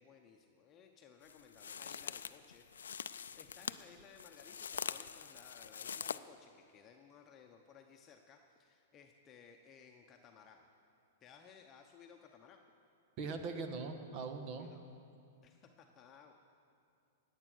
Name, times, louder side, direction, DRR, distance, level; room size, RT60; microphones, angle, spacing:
voice 1, 0.0-10.7 11.2-12.6 14.6-14.8 15.4-16.3, left 6 dB, 25° left, 2 dB, 0.9 m, -60 dB
sound 1, 1.2-6.2, left 7 dB, 90° left, 0.4 m, -44 dB
voice 2, 13.2-14.7, right 4 dB, 40° right, 6 dB, 1.5 m, -41 dB
19.0 x 8.3 x 6.4 m, 2.4 s
hypercardioid pair, 130°, 0 cm